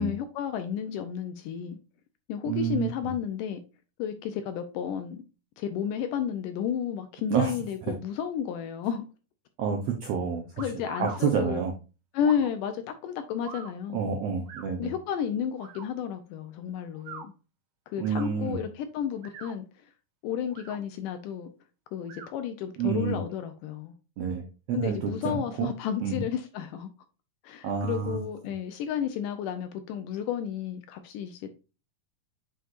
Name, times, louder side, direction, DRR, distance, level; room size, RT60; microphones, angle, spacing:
voice 1, 0.0-1.8 2.3-3.6 4.0-5.2 5.6-9.1 10.6-11.6 12.1-14.0 14.8-17.3 17.9-19.7 20.2-21.5 21.9-23.9 24.7-26.9 27.4-31.5, left 8 dB, 75° left, 2.1 m, -32 dB
voice 2, 2.4-3.1 7.3-7.5 9.6-10.4 11.0-11.7 13.9-14.9 18.0-18.6 22.8-23.2 24.2-24.4 24.7-25.7 26.0-26.2 27.6-28.2, right 6 dB, 85° right, 1.4 m, -28 dB
sound 1, 10.6-11.2 12.2-12.5 13.4-13.7 14.5-14.7 15.6-15.9 16.9-17.3 18.0-18.3 19.1-19.6 20.4-20.8 22.0-22.3, right 5 dB, 70° right, 2.6 m, -42 dB
7.8 x 5.1 x 2.5 m
omnidirectional pair, 4.2 m